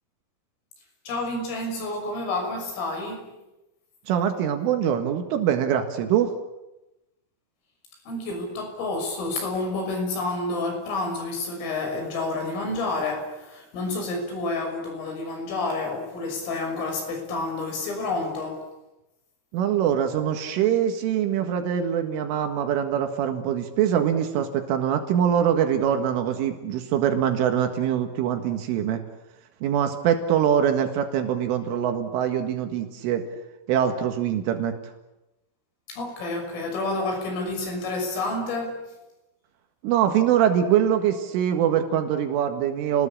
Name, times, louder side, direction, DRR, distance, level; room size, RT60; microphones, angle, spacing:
voice 1, 1.1-3.3 8.1-18.7 35.9-38.8, left 2 dB, 90° left, 3 dB, 8.8 m, -29 dB
voice 2, 4.1-6.3 19.5-29.0 29.6-33.2 33.7-34.8 39.8-43.1, right 9 dB, 80° right, 6 dB, 4.2 m, -23 dB
29.5 x 20.5 x 8.8 m, 0.97 s
omnidirectional pair, 5.6 m